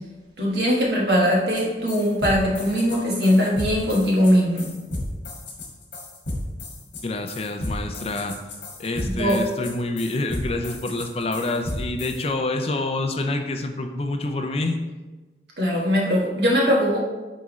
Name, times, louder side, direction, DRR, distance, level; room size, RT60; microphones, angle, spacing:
voice 1, 0.4-4.7 9.2-9.4 15.6-17.0, equal, 65° right, -3 dB, 1.5 m, -20 dB
sound 1, 1.5-1.6 1.9-12.2, left 1 dB, 85° left, 1.5 m, -33 dB
voice 2, 7.0-8.4 8.8-14.8, left 2 dB, 35° left, 5 dB, 0.4 m, -27 dB
9.3 x 3.6 x 3.1 m, 1.2 s
head